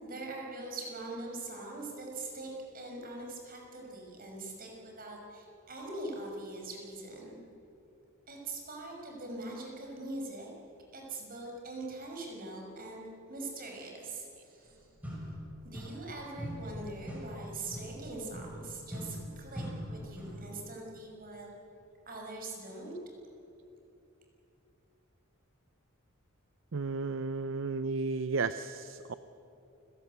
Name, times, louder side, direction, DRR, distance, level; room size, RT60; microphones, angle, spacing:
voice 1, 0.0-7.4 8.3-10.5 10.9-14.9 15.6-21.5 22.1-22.9, right 2 dB, 45° right, 0 dB, 5.5 m, -42 dB
sound 1, 14.6-14.7 15.0-16.1 16.4-20.5, equal, 5° right, 6.1 m, -42 dB
voice 2, 26.7-29.1, right 4 dB, 65° right, 12 dB, 0.6 m, -33 dB
29.0 x 17.5 x 8.1 m, 2.8 s
head